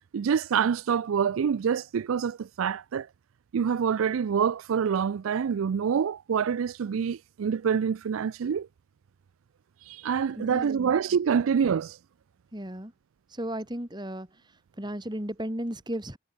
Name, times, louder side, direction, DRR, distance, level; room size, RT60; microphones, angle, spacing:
voice 1, 0.1-3.1 3.5-8.7 9.9-12.0, right 7 dB, 85° right, 0.4 m, -26 dB
voice 2, 10.4-10.9 12.5-12.9 13.3-14.3 14.8-16.2, right 1 dB, 20° right, 2.6 m, -34 dB
head